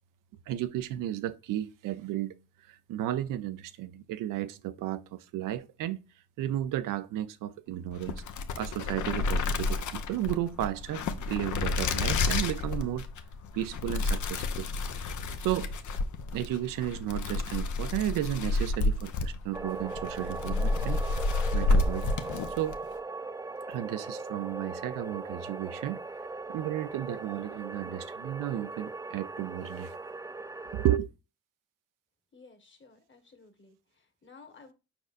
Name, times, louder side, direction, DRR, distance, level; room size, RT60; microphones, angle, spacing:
voice 1, 0.5-2.3 2.7-6.0 6.4-8.2 8.6-13.1 13.5-14.7 15.0-15.1 15.4-15.7 16.3-21.3 21.5-22.1 22.6-22.8 23.7-26.0 26.5-29.9 30.7-31.1, right 13 dB, 75° right, 0.5 m, -33 dB
sound 1, 7.9-22.8, left 3 dB, 65° left, 0.7 m, -30 dB
sound 2, 19.5-31.0, right 3 dB, 10° right, 0.4 m, -39 dB
voice 2, 32.3-34.7, left 4 dB, 35° left, 1.4 m, -55 dB
5.0 x 4.3 x 2.5 m
supercardioid pair, 50°, 32 cm